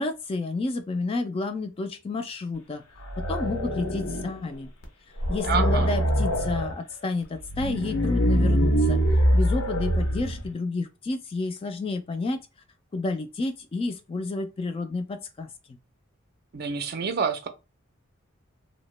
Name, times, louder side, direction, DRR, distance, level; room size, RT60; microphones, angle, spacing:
voice 1, 0.0-2.8 3.2-4.7 5.3-9.0 9.3-12.4 12.9-15.5, left 3 dB, 25° left, 0.3 m, -30 dB
sound 1, 3.0-4.5 4.8-4.9 5.2-6.7 7.4-10.5, equal, 90° left, 0.8 m, -24 dB
voice 2, 5.4-5.9 16.5-17.5, right 6 dB, 50° right, 0.4 m, -28 dB
2.7 x 2.1 x 3.1 m
head